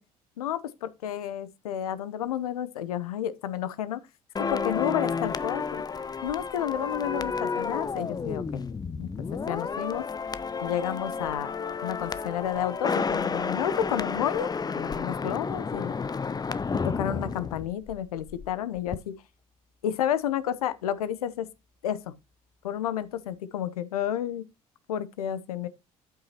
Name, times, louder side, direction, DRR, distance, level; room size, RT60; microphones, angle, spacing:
voice 1, 0.4-4.0 4.4-5.8 6.2-8.6 9.0-10.0 10.6-11.5 11.8-14.5 14.8-15.9 16.7-19.1 19.8-21.5 21.8-22.1 22.6-24.4 24.9-25.7, left 10 dB, 80° left, 0.8 m, -31 dB
sound 1, 4.4-18.5 18.8-19.0, left 5 dB, 20° left, 0.6 m, -31 dB
12.5 x 5.7 x 2.9 m
hypercardioid pair, 55°, 19 cm